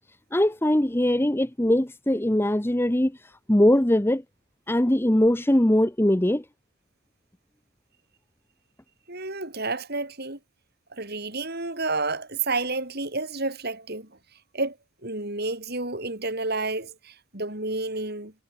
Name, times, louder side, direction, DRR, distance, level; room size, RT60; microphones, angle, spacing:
voice 1, 0.3-4.2 4.7-6.4, left 1 dB, 10° left, 0.8 m, -21 dB
voice 2, 9.1-10.4 10.9-14.1 14.5-14.8 15.0-18.3, right 3 dB, 45° right, 4.7 m, -30 dB
head